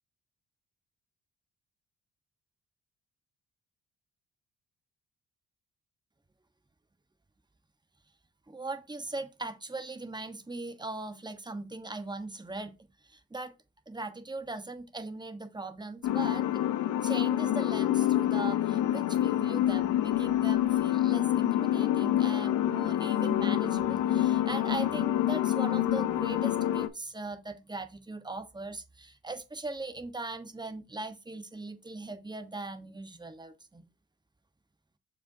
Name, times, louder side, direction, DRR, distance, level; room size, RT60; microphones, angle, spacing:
voice 1, 8.5-12.7 13.0-13.5 13.9-16.6 17.0-33.8, right 2 dB, 15° right, 1.1 m, -39 dB
sound 1, 16.0-26.9, left 12 dB, 75° left, 0.8 m, -27 dB
6.7 x 5.4 x 2.7 m
cardioid pair, 90°, 30 cm